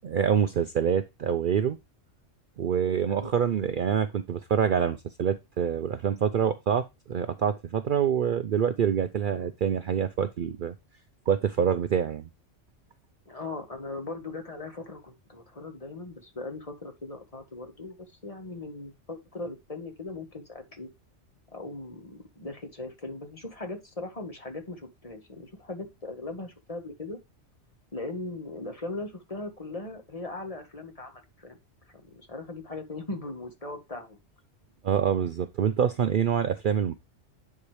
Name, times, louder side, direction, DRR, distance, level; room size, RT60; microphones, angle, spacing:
voice 1, 0.0-1.8 2.6-10.7 11.3-12.3 34.8-37.0, right 8 dB, 55° right, 0.6 m, -26 dB
voice 2, 13.3-20.9 21.5-27.2 27.9-31.6 32.0-34.2, left 2 dB, 30° left, 1.5 m, -39 dB
9.8 x 4.7 x 3.2 m
omnidirectional pair, 1.2 m